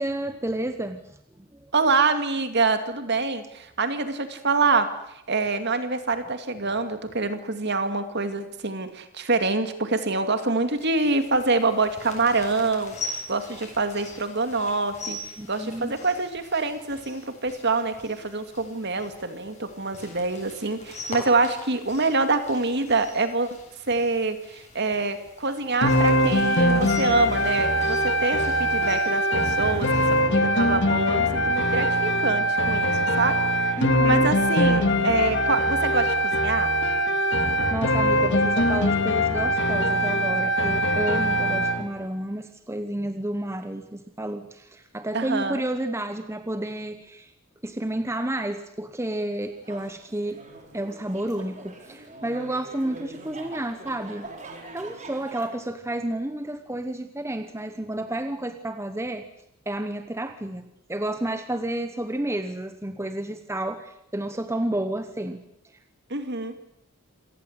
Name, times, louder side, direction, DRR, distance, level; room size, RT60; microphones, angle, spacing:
voice 1, 0.0-1.7 15.4-15.9 33.8-34.3 37.7-47.3 47.6-50.5 50.7-54.3 54.7-59.3 59.7-65.4, right 1 dB, 10° right, 8 dB, 1.1 m, -31 dB
voice 2, 1.7-4.9 5.3-13.0 13.3-15.2 15.5-23.5 23.9-29.9 30.3-36.7 45.1-45.6 66.1-66.5, right 3 dB, 50° right, 8 dB, 2.5 m, -25 dB
sound 1, 10.8-30.2, left 2 dB, 30° left, 7.7 m, -42 dB
sound 2, 25.8-41.8, equal, 55° left, 2.1 m, -22 dB
sound 3, 49.4-55.5, right 2 dB, 35° right, 4.3 m, -44 dB
27.0 x 18.0 x 8.2 m, 0.80 s
head